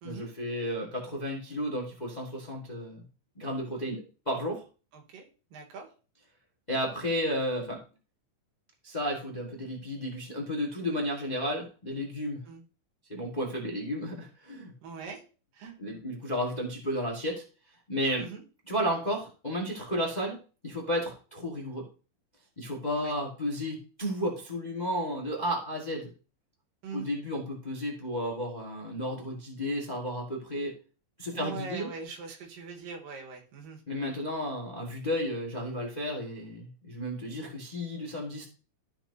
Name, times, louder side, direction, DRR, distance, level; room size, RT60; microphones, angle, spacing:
voice 1, 0.0-3.0 3.3-4.6 6.7-7.8 8.8-12.4 13.1-14.7 15.8-17.4 17.9-18.3 18.7-20.4 20.6-21.8 22.6-26.1 26.9-30.7 31.2-31.9 33.9-38.5, equal, 25° left, -1 dB, 0.9 m, -33 dB
voice 2, 4.9-5.9 12.5-12.6 14.8-15.2 15.5-15.8 18.2-18.4 23.0-23.1 26.8-27.1 31.3-33.8, right 4 dB, 85° right, 3 dB, 3.1 m, -42 dB
13.5 x 5.8 x 2.7 m, 0.36 s
omnidirectional pair, 3.9 m